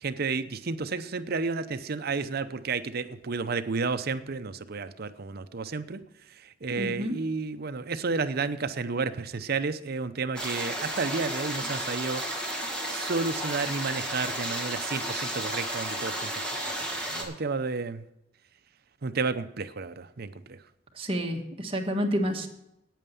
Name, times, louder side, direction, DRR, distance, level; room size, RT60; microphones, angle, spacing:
voice 1, 0.0-6.0 6.4-12.2 12.9-16.4 16.9-18.0 19.0-20.6, right 4 dB, 55° right, 12 dB, 0.7 m, -31 dB
voice 2, 6.8-7.1 20.9-22.5, equal, 30° right, 2 dB, 1.6 m, -29 dB
sound 1, 10.4-17.2, right 1 dB, 5° left, 2.1 m, -33 dB
9.3 x 9.1 x 6.9 m, 0.85 s
head